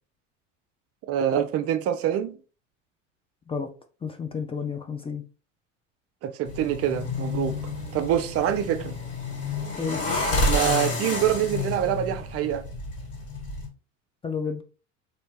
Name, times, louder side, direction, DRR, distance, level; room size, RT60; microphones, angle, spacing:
voice 1, 1.1-2.4 6.2-7.6 7.9-8.9 10.4-12.6, right 10 dB, 40° right, 0.5 m, -25 dB
voice 2, 4.0-5.2 9.8-10.0 14.2-14.6, left 5 dB, 15° left, 0.4 m, -30 dB
sound 1, 6.5-13.7, left 2 dB, 40° left, 1.9 m, -29 dB
4.1 x 2.7 x 3.3 m
hypercardioid pair, 75°, 37 cm